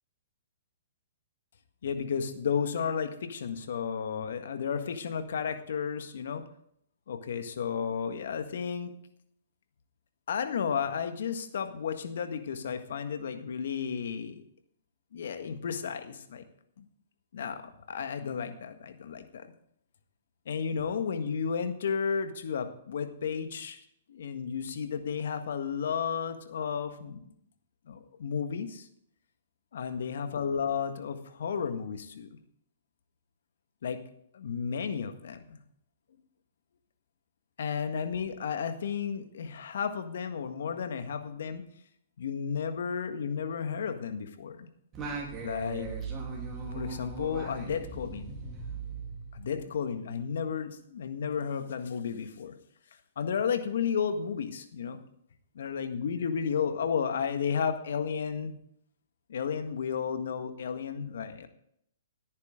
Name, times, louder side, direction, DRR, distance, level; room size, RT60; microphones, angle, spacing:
voice 1, 1.8-6.4 7.1-8.9 10.3-14.4 15.1-16.4 16.8-16.9 17.3-19.5 20.5-23.8 24.1-27.3 27.9-28.9 29.7-32.3 33.8-34.0 34.3-35.6 37.6-41.6 42.2-44.7 45.4-45.9 46.7-48.4 49.3-52.6 53.2-55.0 55.5-58.6 59.3-61.5, left 6 dB, 70° left, 8 dB, 1.6 m, -33 dB
Singing, 44.9-49.7, right 4 dB, 25° right, 3.5 m, -39 dB
17.5 x 9.6 x 3.8 m, 0.70 s
hypercardioid pair, 135°, 0 cm